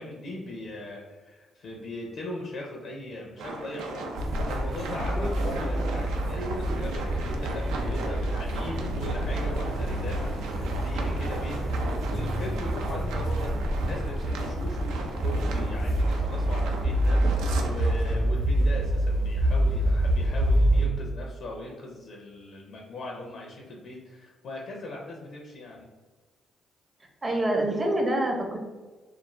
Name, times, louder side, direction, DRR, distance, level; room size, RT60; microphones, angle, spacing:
voice 1, 0.0-25.9, left 1 dB, 65° left, -1 dB, 0.5 m, -39 dB
sound 1, 3.4-18.2, right 3 dB, 90° right, 0.4 m, -37 dB
sound 2, 4.2-20.9, right 1 dB, 75° right, 0.9 m, -27 dB
voice 2, 27.2-28.6, right 1 dB, 25° right, 1 dB, 0.6 m, -26 dB
2.4 x 2.3 x 3.0 m, 1.3 s
cardioid pair, 90°, 0 cm